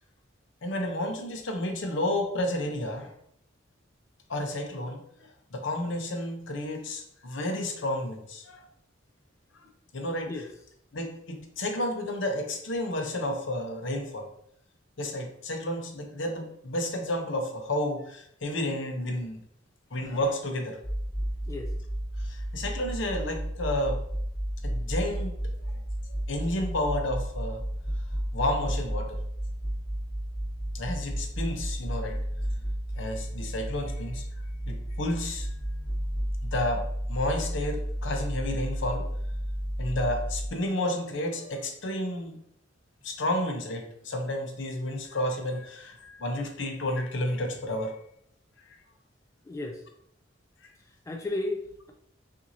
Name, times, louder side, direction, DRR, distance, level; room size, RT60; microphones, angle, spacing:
voice 1, 0.6-3.1 4.3-8.6 9.9-10.5 10.9-14.3 15.0-19.4 19.9-20.8 22.2-24.0 24.6-25.3 25.7-25.8 26.3-27.6 28.3-29.2 30.7-32.2 33.0-34.2 34.7-35.5 36.5-36.8 37.1-39.0 39.8-42.4 43.0-47.9 50.6-50.7, left 1 dB, 70° left, 4 dB, 0.8 m, -31 dB
sound 1, 20.8-40.5, equal, 10° right, 0.8 m, -32 dB
voice 2, 49.5-49.8 51.1-51.9, left 2 dB, 15° left, 2 dB, 0.3 m, -33 dB
5.7 x 2.7 x 2.7 m, 0.72 s
head